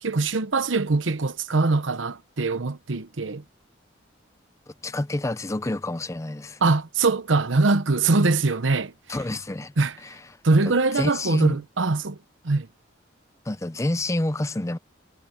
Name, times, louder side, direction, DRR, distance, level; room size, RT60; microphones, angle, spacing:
voice 1, 0.0-3.4 6.6-8.9 9.8-10.0 10.4-12.2 12.4-12.7, right 3 dB, 85° right, 1.0 m, -22 dB
voice 2, 4.7-6.6 9.1-9.7 10.0-10.2 10.9-11.6 13.5-14.8, left 1 dB, 15° left, 0.5 m, -28 dB
head